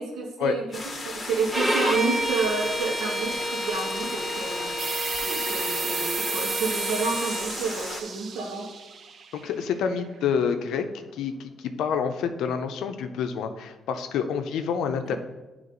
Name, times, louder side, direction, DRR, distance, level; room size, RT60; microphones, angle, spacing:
voice 1, 0.0-4.7 5.2-8.7, right 4 dB, 80° right, 0 dB, 1.5 m, -30 dB
sound 1, 0.7-8.0, left 3 dB, 35° left, 0.9 m, -36 dB
Bowed string instrument, 1.5-7.5, right 1 dB, ahead, 0.8 m, -30 dB
sound 2, 4.8-10.1, right 6 dB, 55° right, 0.5 m, -33 dB
voice 2, 9.3-10.9 11.1-15.2, left 6 dB, 80° left, 7 dB, 0.5 m, -28 dB
9.3 x 3.1 x 3.9 m, 1.1 s
cardioid pair, 90°, 0 cm